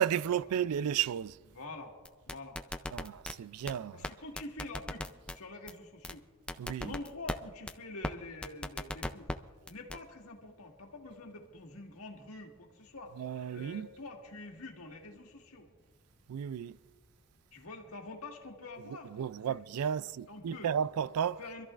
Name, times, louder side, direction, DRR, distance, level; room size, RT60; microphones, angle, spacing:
voice 1, 0.0-1.4 2.9-4.0 6.6-6.9 13.2-13.9 16.3-16.8 19.2-21.4, right 8 dB, 80° right, 0.4 m, -33 dB
voice 2, 1.5-1.9 2.3-2.6 2.9-3.1 3.9-6.2 6.8-9.3 9.7-15.7 17.5-19.1 19.4-19.6 20.3-20.7 21.4-21.6, left 2 dB, 70° left, 1.7 m, -46 dB
sound 1, 2.0-3.3 3.7-3.8 4.0-4.1 4.4-5.4 5.7-5.8 6.0-6.1 6.5-7.4 7.7-7.8 8.0-8.1 8.4-9.4 9.7-10.0, left 1 dB, 5° left, 0.4 m, -37 dB
26.0 x 13.5 x 2.5 m
head